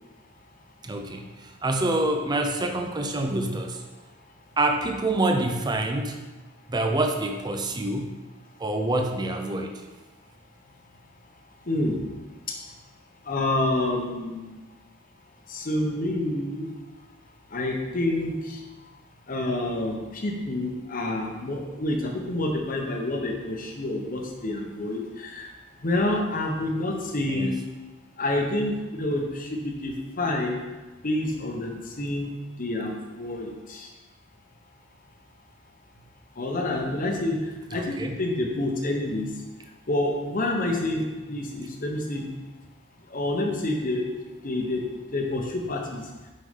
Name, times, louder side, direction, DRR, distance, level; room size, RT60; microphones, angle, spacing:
voice 1, 0.8-3.8 4.6-6.2 6.7-8.2 8.6-9.8 27.3-27.6 37.7-38.2, right 2 dB, 20° right, 4 dB, 0.5 m, -27 dB
voice 2, 11.7-12.0 13.3-14.6 15.5-16.7 17.5-18.6 19.3-25.5 25.8-27.6 28.2-30.6 31.0-32.3 32.6-33.9 36.4-37.4 37.7-39.3 39.9-42.3 43.1-44.0 44.4-44.8 45.1-46.0, left 1 dB, 40° left, 1 dB, 1.0 m, -28 dB
6.3 x 5.5 x 3.6 m, 1.2 s
head